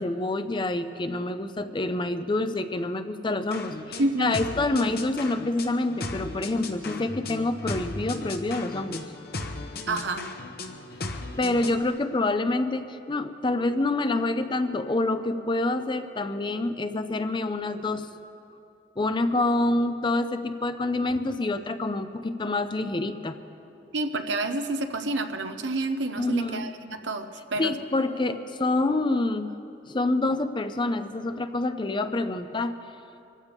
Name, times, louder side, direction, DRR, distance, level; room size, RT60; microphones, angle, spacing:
voice 1, 0.0-9.1 11.4-18.1 19.0-23.4 26.2-26.7 27.6-29.5 29.9-32.8, left 2 dB, 25° left, 10 dB, 0.6 m, -27 dB
sound 1, 3.5-11.8, left 2 dB, 55° left, 1.1 m, -36 dB
voice 2, 4.0-4.3 9.9-10.3 23.9-27.7, right 2 dB, 80° right, 7 dB, 1.0 m, -29 dB
25.0 x 14.5 x 3.6 m, 2.6 s
head